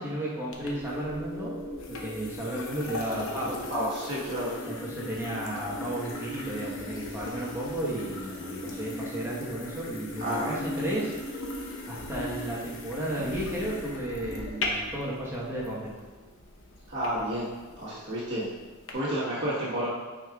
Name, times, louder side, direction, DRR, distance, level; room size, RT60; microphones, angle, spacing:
voice 1, 0.0-1.5 1.9-3.7 4.7-11.1 11.9-15.9, right 1 dB, 10° right, -7 dB, 1.2 m, -33 dB
sound 1, 0.5-18.9, left 2 dB, 65° left, 0.9 m, -40 dB
sound 2, 0.6-12.5, left 1 dB, 20° left, 1.5 m, -41 dB
voice 2, 3.7-4.8 10.2-10.6 16.9-17.5 17.8-18.5 18.9-19.9, equal, 55° right, -8 dB, 1.5 m, -30 dB
8.6 x 4.9 x 2.4 m, 1.3 s
head